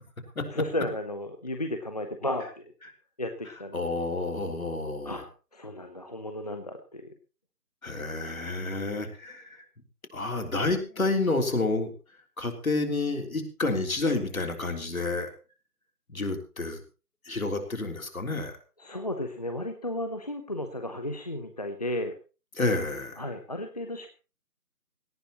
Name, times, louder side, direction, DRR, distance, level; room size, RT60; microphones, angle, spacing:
voice 1, 0.5-2.7 3.2-3.8 5.0-7.1 18.8-22.1 23.2-24.1, left 1 dB, 25° left, 6 dB, 0.9 m, -34 dB
voice 2, 3.7-5.2 7.8-9.6 10.1-11.9 12.4-15.3 16.1-16.8 17.3-18.5 22.6-23.2, left 3 dB, 60° left, 5 dB, 3.5 m, -29 dB
17.5 x 15.0 x 3.0 m, 0.33 s
figure-of-eight pair, 155°, 47 cm